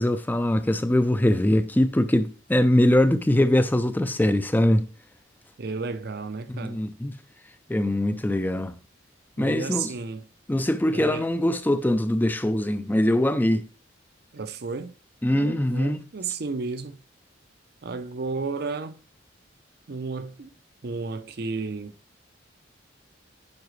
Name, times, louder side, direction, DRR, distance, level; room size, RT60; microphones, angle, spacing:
voice 1, 0.0-4.9 6.5-7.1 7.7-8.7 9.4-9.9 10.5-13.6 15.2-16.0, left 1 dB, 10° left, 0.4 m, -22 dB
voice 2, 5.6-6.8 9.4-10.2 10.9-11.3 14.3-14.9 15.3-17.0 17.8-19.0 19.9-20.5 20.8-21.9, right 4 dB, 55° right, 0.6 m, -32 dB
9.6 x 4.8 x 3.2 m
head